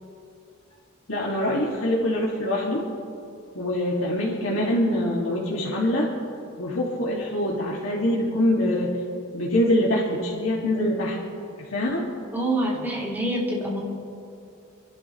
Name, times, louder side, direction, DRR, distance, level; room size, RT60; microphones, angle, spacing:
voice 1, 1.1-2.8 3.5-6.1 6.6-8.9 9.3-11.2 11.6-12.1, left 1 dB, 85° left, -5 dB, 2.1 m, -24 dB
voice 2, 12.3-13.8, right 1 dB, 10° right, -5 dB, 2.9 m, -26 dB
28.5 x 11.5 x 3.1 m, 2.7 s
head